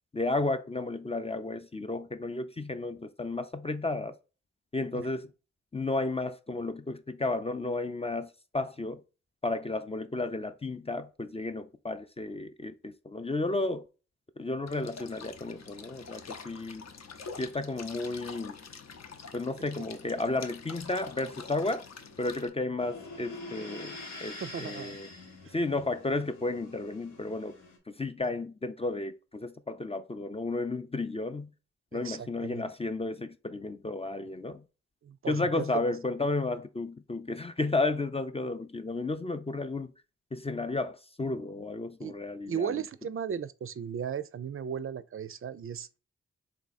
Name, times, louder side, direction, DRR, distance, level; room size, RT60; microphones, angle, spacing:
voice 1, 0.1-4.2 4.7-5.3 5.7-9.0 9.4-13.9 14.4-16.8 17.4-18.6 19.3-21.8 22.2-25.1 25.5-27.6 28.0-31.5 31.9-34.6 35.3-39.9 40.3-42.8, left 2 dB, 20° left, 0.4 m, -33 dB
sound 1, 14.7-22.5, left 5 dB, 60° left, 0.7 m, -46 dB
sound 2, 22.8-27.8, left 2 dB, 90° left, 1.0 m, -45 dB
voice 2, 24.4-25.0 31.9-32.6 35.0-35.7 42.0-42.1 42.5-45.9, right 7 dB, 45° right, 0.4 m, -36 dB
3.5 x 2.8 x 4.1 m
cardioid pair, 45°, 29 cm